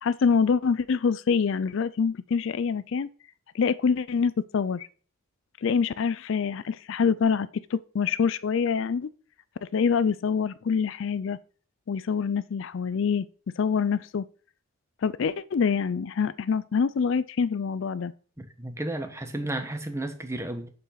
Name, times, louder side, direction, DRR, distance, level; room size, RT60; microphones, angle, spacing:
voice 1, 0.0-3.1 3.5-4.9 5.6-9.1 9.7-11.4 11.9-13.3 13.6-14.2 15.0-18.1, left 6 dB, 55° left, 0.4 m, -25 dB
voice 2, 18.4-20.7, right 1 dB, 10° right, 1.1 m, -33 dB
8.0 x 6.9 x 5.8 m
head